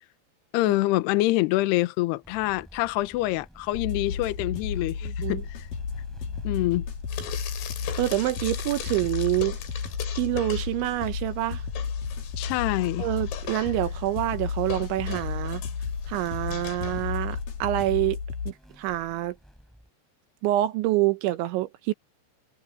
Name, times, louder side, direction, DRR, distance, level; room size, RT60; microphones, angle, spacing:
voice 1, 0.5-5.7 6.4-6.9 12.4-13.0, left 18 dB, 90° left, 2.4 m, -26 dB
sound 1, 2.2-19.9, equal, ahead, 3.5 m, -52 dB
sound 2, 3.7-18.5, left 6 dB, 50° left, 3.7 m, -33 dB
voice 2, 5.0-5.4 8.0-9.6 10.1-11.6 13.0-15.6 16.1-18.2 18.5-19.4 20.4-21.9, right 16 dB, 75° right, 3.0 m, -27 dB
Frying (food), 7.1-11.1 11.4-17.4, left 10 dB, 70° left, 5.3 m, -40 dB
omnidirectional pair, 5.9 m